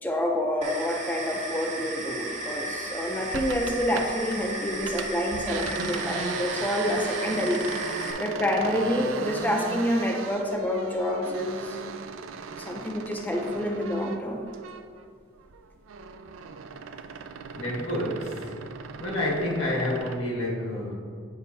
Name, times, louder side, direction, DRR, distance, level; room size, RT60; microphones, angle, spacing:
voice 1, 0.0-7.6 8.2-11.8 12.6-14.5, equal, 10° left, 1 dB, 0.4 m, -28 dB
sound 1, 0.6-8.1, right 2 dB, 40° right, 0.8 m, -35 dB
sound 2, 3.3-4.4 4.7-15.1 15.4-20.2, right 5 dB, 90° right, 0.4 m, -37 dB
voice 2, 17.5-18.6 19.0-20.9, left 1 dB, 85° left, -3 dB, 1.4 m, -29 dB
8.2 x 5.3 x 2.6 m, 2.1 s
head